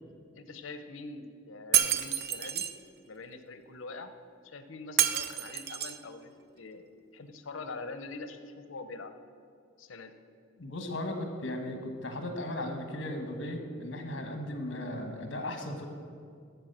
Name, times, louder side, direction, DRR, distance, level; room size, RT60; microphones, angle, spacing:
voice 1, 0.3-2.7 3.0-4.1 4.4-6.9 7.1-9.1 9.8-10.1, left 3 dB, 80° left, 9 dB, 0.7 m, -44 dB
Shatter, 1.7-2.7 5.0-6.0, right 10 dB, 50° right, 0.4 m, -28 dB
voice 2, 10.6-15.9, left 1 dB, 65° left, 5 dB, 1.3 m, -36 dB
13.5 x 4.6 x 6.7 m, 2.2 s
head